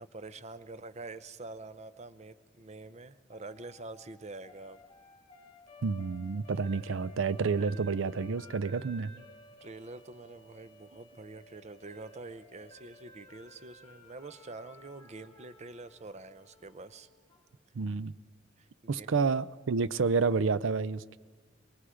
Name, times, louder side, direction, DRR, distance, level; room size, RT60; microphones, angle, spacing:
voice 1, 0.0-4.8 9.6-17.1 18.6-19.2, right 3 dB, 35° right, 0.7 m, -46 dB
sound 1, 3.3-17.4, left 1 dB, 20° left, 2.2 m, -55 dB
voice 2, 5.8-9.1 17.7-18.1 18.9-21.2, right 4 dB, 85° right, 0.5 m, -29 dB
23.5 x 22.0 x 5.0 m
head